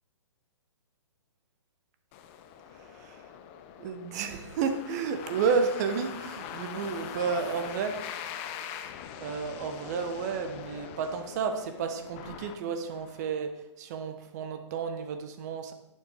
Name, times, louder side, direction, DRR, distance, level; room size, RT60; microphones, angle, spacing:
sound 1, 2.1-13.3, left 9 dB, 25° left, 0.6 m, -43 dB
voice 1, 2.7-3.2 3.8-8.1 9.2-15.7, right 5 dB, 35° right, 7 dB, 1.0 m, -32 dB
11.0 x 9.2 x 3.4 m, 0.88 s
figure-of-eight pair, 120°, 16 cm